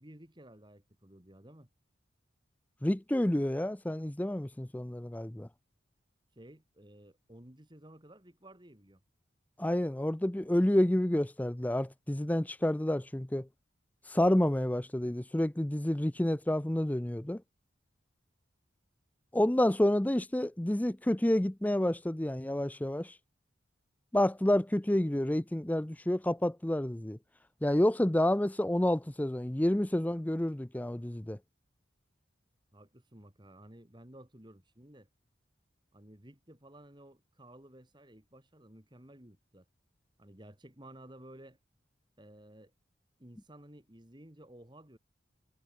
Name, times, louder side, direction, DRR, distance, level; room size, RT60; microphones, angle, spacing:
voice 1, 0.0-1.7 6.3-9.0 32.7-35.1 35.9-39.7 40.2-41.6 42.2-42.7 43.2-45.0, right 1 dB, 25° right, 2.5 m, -54 dB
voice 2, 2.8-5.5 9.6-13.5 14.1-17.4 19.3-23.1 24.1-27.2 27.6-31.4, left 1 dB, 10° left, 0.5 m, -29 dB
head